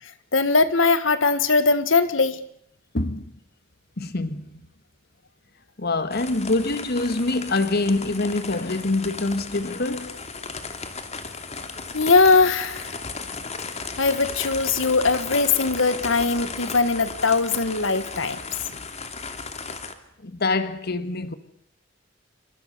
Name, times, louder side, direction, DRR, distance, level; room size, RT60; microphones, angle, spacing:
voice 1, 0.3-2.4 11.9-13.0 14.0-18.4, left 4 dB, 80° left, 1.8 m, -20 dB
voice 2, 2.9-3.3 4.0-4.6 5.8-10.2 20.2-21.3, left 2 dB, 55° left, 1.8 m, -25 dB
sound 1, 6.1-19.9, left 4 dB, 35° left, 2.9 m, -35 dB
28.5 x 26.0 x 6.9 m
head